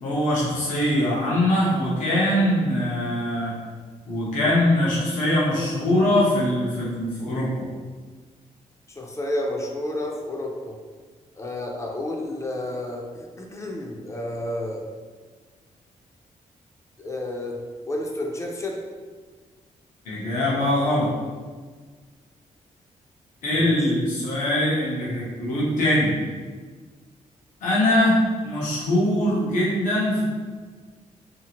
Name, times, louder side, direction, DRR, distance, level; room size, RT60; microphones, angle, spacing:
voice 1, 0.0-3.5 4.1-7.7 20.0-21.1 23.4-26.1 27.6-30.2, left 1 dB, 80° left, -7 dB, 0.8 m, -22 dB
voice 2, 8.9-10.8 11.4-14.9 17.0-17.6 17.8-18.8 23.5-23.8, left 1 dB, 25° left, 0 dB, 0.3 m, -31 dB
2.7 x 2.4 x 2.8 m, 1.5 s
wide cardioid pair, 150°, 13 cm